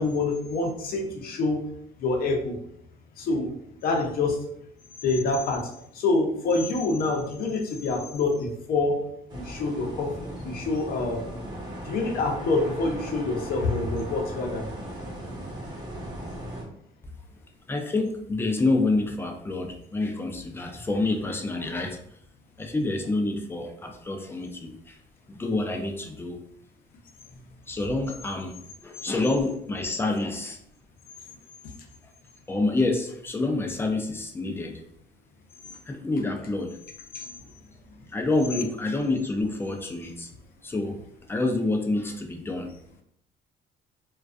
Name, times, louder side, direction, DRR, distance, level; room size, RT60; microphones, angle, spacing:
voice 1, 0.0-1.6 2.0-2.6 3.2-3.5 3.8-4.4 5.0-9.0 9.3-10.1 10.4-11.2 11.8-14.6 37.1-37.4, left 3 dB, 60° left, 2 dB, 0.6 m, -26 dB
sound 1, 9.3-16.6, right 1 dB, 25° right, 0.7 m, -37 dB
voice 2, 17.7-22.0 22.6-25.0 25.3-26.4 27.7-30.6 32.5-34.8 35.9-36.8 38.1-40.3 40.6-41.0 41.3-42.7, left 2 dB, 15° left, 4 dB, 0.3 m, -27 dB
2.4 x 2.2 x 2.3 m, 0.71 s
cardioid pair, 110°, 17 cm